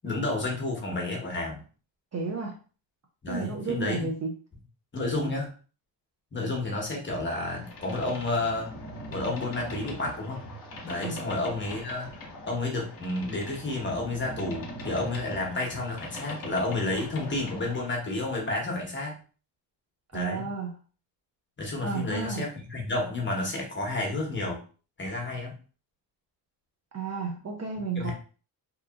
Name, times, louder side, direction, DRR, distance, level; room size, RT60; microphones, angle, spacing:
voice 1, 0.0-1.6 3.2-4.1 4.9-5.5 6.3-8.7 9.1-10.5 10.8-12.2 12.5-19.2 20.1-20.5 21.6-24.6 25.0-25.5 28.0-28.1, left 2 dB, 25° left, -1 dB, 1.0 m, -31 dB
voice 2, 2.1-2.6 3.3-4.3 11.0-11.2 20.1-20.7 21.8-22.5 26.9-28.1, right 5 dB, 35° right, 2 dB, 0.6 m, -32 dB
Boat Water vehicle, 7.5-18.0, left 1 dB, 50° left, 1.1 m, -41 dB
2.9 x 2.3 x 2.4 m, 0.38 s
cardioid pair, 80°, 45 cm